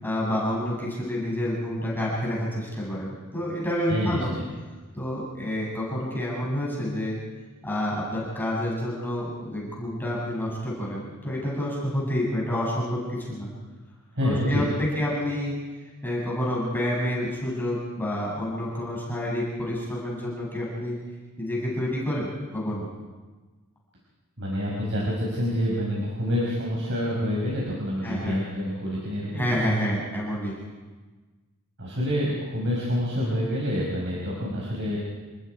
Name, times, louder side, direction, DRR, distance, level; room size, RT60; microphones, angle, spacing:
voice 1, 0.0-4.3 4.9-7.2 7.6-13.5 14.2-14.6 15.0-15.5 16.0-21.0 21.4-22.9 28.0-28.4 29.3-30.5, left 1 dB, 10° left, -5 dB, 6.9 m, -28 dB
voice 2, 3.9-4.2 14.1-14.6 24.4-29.5 31.8-35.0, equal, 55° right, -5 dB, 5.5 m, -27 dB
28.0 x 21.5 x 4.8 m, 1.3 s
head